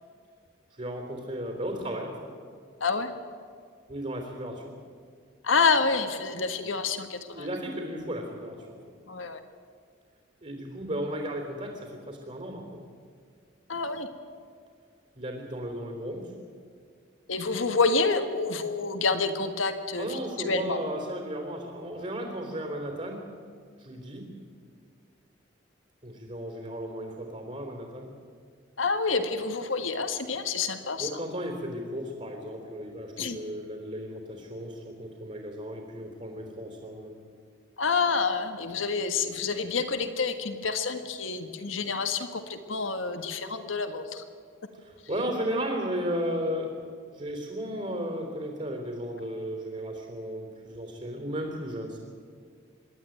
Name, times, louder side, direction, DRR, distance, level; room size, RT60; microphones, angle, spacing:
voice 1, 0.7-2.3 3.9-4.7 7.3-8.8 10.4-12.8 15.1-16.3 19.9-23.2 23.8-24.2 26.0-28.1 31.0-37.2 44.8-46.7 47.1-52.0, equal, 40° right, 2 dB, 3.5 m, -35 dB
voice 2, 2.8-3.1 5.4-7.5 9.1-9.4 13.7-14.1 17.3-20.8 28.8-31.2 33.2-33.4 37.8-44.2, left 4 dB, 90° left, 8 dB, 1.6 m, -28 dB
25.5 x 11.5 x 9.3 m, 2.1 s
head